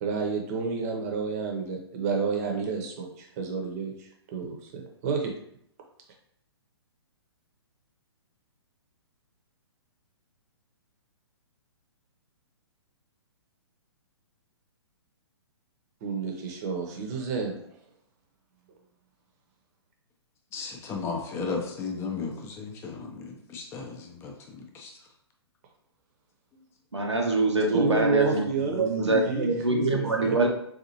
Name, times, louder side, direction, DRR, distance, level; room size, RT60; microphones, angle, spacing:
voice 1, 0.0-5.3 16.0-17.6 27.7-30.4, right 4 dB, 35° right, 2 dB, 0.8 m, -30 dB
voice 2, 20.5-24.9, left 4 dB, 20° left, 2 dB, 0.5 m, -35 dB
voice 3, 26.9-28.5 28.8-30.5, right 2 dB, 85° right, 2 dB, 0.8 m, -24 dB
4.1 x 2.5 x 2.8 m, 0.69 s
figure-of-eight pair, 120°, 14 cm